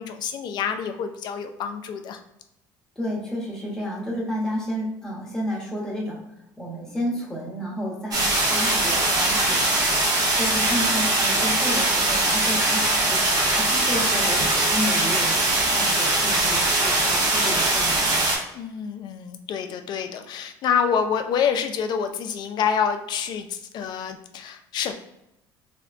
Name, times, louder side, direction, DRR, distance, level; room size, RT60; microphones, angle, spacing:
voice 1, 0.0-2.2 18.5-24.9, left 7 dB, 50° left, 6 dB, 0.4 m, -27 dB
voice 2, 3.0-6.2 6.6-9.7 10.3-12.8 13.1-15.4 15.7-18.2, equal, 5° left, -5 dB, 1.0 m, -31 dB
sound 1, 8.1-18.4, right 2 dB, 40° right, 0.8 m, -21 dB
3.3 x 2.1 x 2.4 m, 0.84 s
cardioid pair, 115°, 9 cm